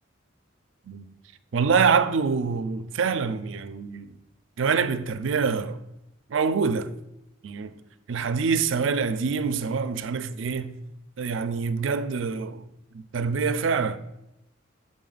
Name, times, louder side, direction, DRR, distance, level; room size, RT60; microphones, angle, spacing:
voice 1, 1.5-4.1 4.6-5.8 6.3-6.9 7.4-7.7 8.1-10.8 11.2-12.6 12.9-14.0, right 5 dB, 85° right, 0.4 m, -25 dB
7.7 x 4.2 x 3.9 m
head